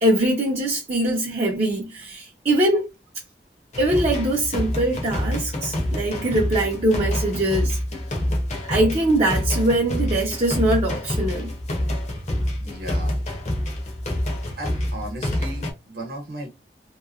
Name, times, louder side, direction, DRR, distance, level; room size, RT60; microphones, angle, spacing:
voice 1, 0.0-2.9 3.8-7.8 8.7-11.5, right 1 dB, 35° right, 0.6 m, -22 dB
sound 1, 3.7-15.7, left 1 dB, 40° left, 0.8 m, -27 dB
voice 2, 12.6-13.2 14.6-16.5, right 1 dB, 60° right, 1.0 m, -35 dB
2.9 x 2.1 x 2.4 m
head